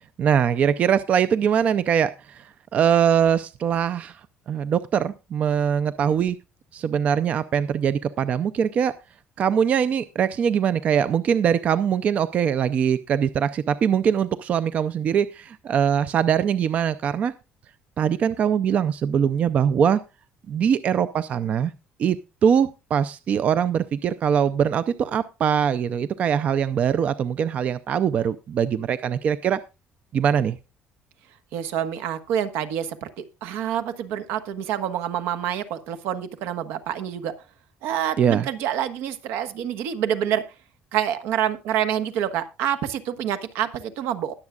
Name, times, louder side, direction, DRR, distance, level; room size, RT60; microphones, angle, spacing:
voice 1, 0.2-4.2 4.5-6.4 6.7-8.9 9.4-17.3 18.0-20.0 20.5-21.7 22.0-22.2 22.4-29.6 30.1-30.6 38.2-38.5, right 8 dB, 35° right, 14 dB, 0.4 m, -22 dB
voice 2, 31.5-37.3 37.8-40.4 40.9-44.3, right 10 dB, 80° right, 11 dB, 1.2 m, -27 dB
20.5 x 7.2 x 2.4 m, 0.28 s
cardioid pair, 165°, 4 cm